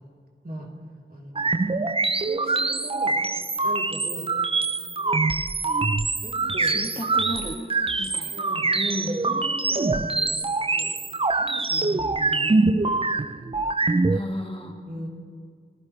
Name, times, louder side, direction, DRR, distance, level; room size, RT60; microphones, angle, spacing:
voice 1, 1.1-1.6 2.2-3.2 3.6-4.3 4.7-5.5 6.2-6.8 8.0-10.3 10.7-10.9 11.3-13.4 14.9-15.1, right 1 dB, 45° right, -2 dB, 3.3 m, -38 dB
sound 1, 1.3-14.2, right 3 dB, 25° right, 0.5 m, -24 dB
voice 2, 6.6-7.6 8.0-8.5 14.1-14.7, left 1 dB, 25° left, 1 dB, 2.0 m, -34 dB
29.0 x 15.0 x 3.3 m, 2.1 s
wide cardioid pair, 45°, 21 cm